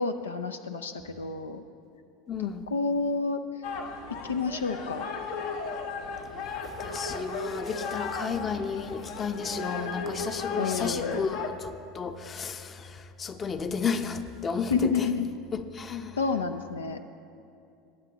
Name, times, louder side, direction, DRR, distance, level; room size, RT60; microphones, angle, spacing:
voice 1, 0.0-1.6 2.4-3.4 4.1-5.1 10.6-11.3 14.7-15.3 16.2-17.0, left 4 dB, 85° left, 8 dB, 0.4 m, -29 dB
voice 2, 2.3-2.7 6.3-15.1 15.5-16.2, left 5 dB, 30° left, 9 dB, 0.8 m, -33 dB
sound 1, 3.6-11.5, left 4 dB, 65° left, 1.0 m, -35 dB
20.5 x 7.5 x 4.0 m, 2.6 s
hypercardioid pair, 80°, 0 cm